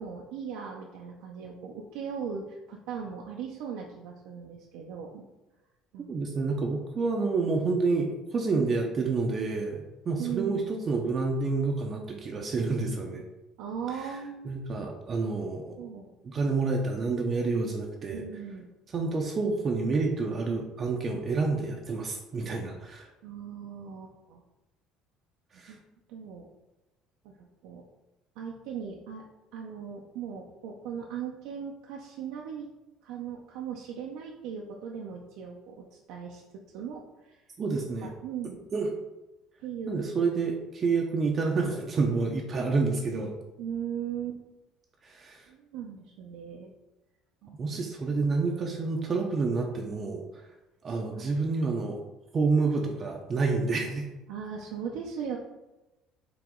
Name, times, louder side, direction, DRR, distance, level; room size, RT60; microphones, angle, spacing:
voice 1, 0.0-5.2 5.9-6.1 10.2-10.7 13.6-14.6 15.8-16.1 18.1-18.7 23.2-24.4 25.7-25.8 26.1-26.5 27.2-27.8 28.4-29.2 29.5-32.7 33.0-36.4 36.7-37.4 38.0-38.6 39.6-40.0 43.6-44.4 45.5-46.7 47.4-47.8 50.9-51.3 53.8-53.9 54.3-55.4, right 7 dB, 80° right, -1 dB, 0.5 m, -38 dB
voice 2, 6.1-13.2 14.0-14.1 14.4-15.8 16.2-18.2 18.9-23.1 25.5-25.8 37.6-38.1 38.7-38.9 39.9-43.3 45.0-45.5 47.5-50.4 50.8-52.0 52.3-54.1, right 4 dB, 30° right, 1 dB, 0.5 m, -28 dB
4.8 x 3.0 x 3.7 m, 1.0 s
cardioid pair, 135°, 0 cm